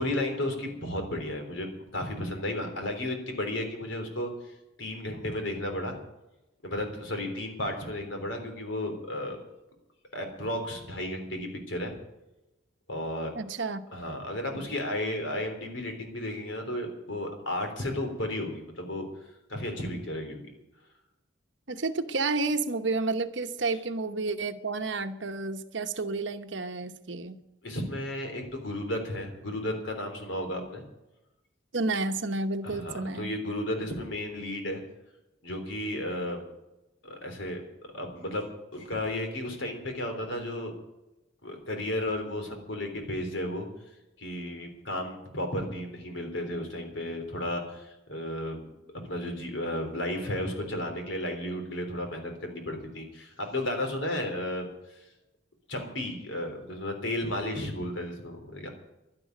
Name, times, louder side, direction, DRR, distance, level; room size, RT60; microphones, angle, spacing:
voice 1, 0.0-1.7 1.9-4.3 4.8-6.0 6.6-9.4 10.1-11.9 12.9-13.3 13.9-19.0 19.5-20.4 27.6-30.8 32.6-34.8 35.4-36.5 37.0-37.6 37.9-40.7 41.4-43.7 44.2-48.7 48.9-54.7 54.9-55.0 55.7-58.7, left 1 dB, 70° left, 5 dB, 3.5 m, -33 dB
voice 2, 13.3-13.8 21.7-27.4 31.7-33.3, right 3 dB, 65° right, 9 dB, 1.0 m, -30 dB
11.5 x 11.0 x 9.4 m, 0.95 s
head